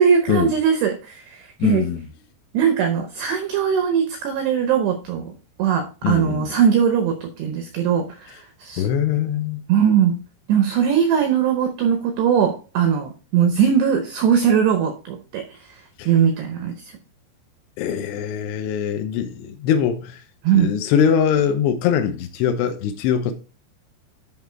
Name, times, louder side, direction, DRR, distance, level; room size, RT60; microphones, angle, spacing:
voice 1, 0.0-1.9 2.5-5.3 5.6-8.9 9.7-10.2 10.5-16.7 20.4-20.7, right 8 dB, 85° right, 2.4 m, -20 dB
voice 2, 1.6-2.0 6.0-6.5 8.8-9.6 16.0-16.1 17.8-20.2 20.5-23.3, left 8 dB, 90° left, 2.4 m, -22 dB
10.5 x 3.8 x 4.4 m
omnidirectional pair, 6.0 m